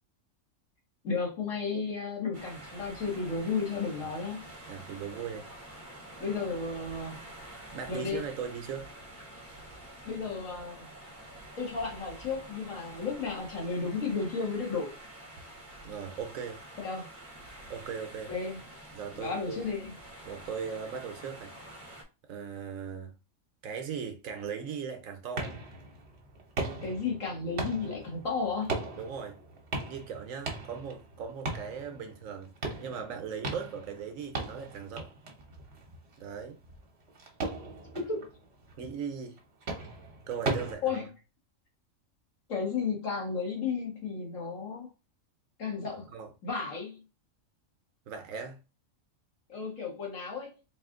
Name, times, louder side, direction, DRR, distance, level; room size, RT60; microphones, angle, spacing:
voice 1, 1.0-4.5 6.2-7.3 7.9-8.2 10.0-10.9 11.6-14.9 16.8-17.1 18.3-18.6 19.1-19.9 26.8-28.9 37.9-38.3 40.8-41.1 42.5-44.9 45.6-46.1 46.4-47.0 49.5-50.5, left 4 dB, 70° left, 1.8 m, -33 dB
sound 1, 2.3-22.0, right 1 dB, 35° right, 1.4 m, -48 dB
voice 2, 4.7-5.5 7.7-8.9 15.8-16.6 17.7-18.3 18.9-19.6 20.2-21.5 22.3-23.1 23.6-25.6 29.0-29.4 29.9-32.5 32.8-35.1 36.2-36.6 38.8-39.4 40.3-41.0 46.1-46.3 48.1-48.6, right 6 dB, 80° right, 1.1 m, -38 dB
sound 2, 25.4-40.7, right 3 dB, 55° right, 1.3 m, -39 dB
4.0 x 2.5 x 3.6 m
omnidirectional pair, 1.4 m